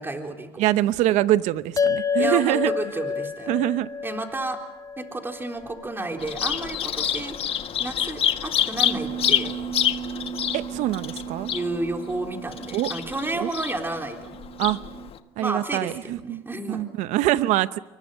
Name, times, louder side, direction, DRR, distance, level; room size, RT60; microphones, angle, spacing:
voice 1, 0.0-0.7 2.2-3.6 4.0-4.6 5.0-7.5 7.8-9.5 11.5-14.4 15.4-16.9, right 2 dB, 15° right, 3.9 m, -31 dB
voice 2, 0.6-2.7 3.5-3.9 10.5-11.5 12.7-12.9 13.3-13.5 14.6-14.8 15.4-16.4 16.7-17.8, right 15 dB, 75° right, 0.8 m, -24 dB
sound 1, 1.8-6.4, left 6 dB, 30° left, 1.0 m, -29 dB
Bird vocalization bird call bird song, 6.2-15.2, left 10 dB, 50° left, 1.5 m, -28 dB
Bass guitar, 8.8-15.1, right 10 dB, 55° right, 2.1 m, -37 dB
27.0 x 23.5 x 5.6 m
supercardioid pair, 85°, 12 cm